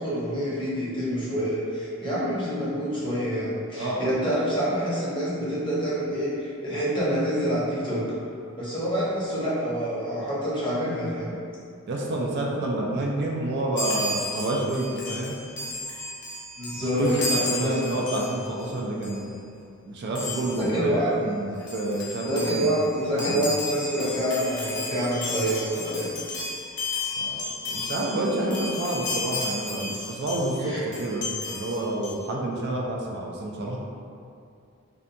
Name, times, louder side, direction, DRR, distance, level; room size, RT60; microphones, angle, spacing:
voice 1, 0.0-8.0 8.6-11.4 16.6-17.2 17.6-17.8 20.5-21.2 22.2-26.1 30.6-30.8, equal, 25° left, -9 dB, 0.7 m, -27 dB
voice 2, 11.9-15.4 16.9-19.4 19.9-22.6 23.0-23.5 27.2-33.8, right 1 dB, 55° right, -2 dB, 0.3 m, -29 dB
Chime, 13.7-18.7 19.0-19.2 20.1-20.7 21.3-21.4 21.6-30.6 30.9-32.2, left 2 dB, 60° left, 0.6 m, -33 dB
2.6 x 2.2 x 2.5 m, 2.4 s
head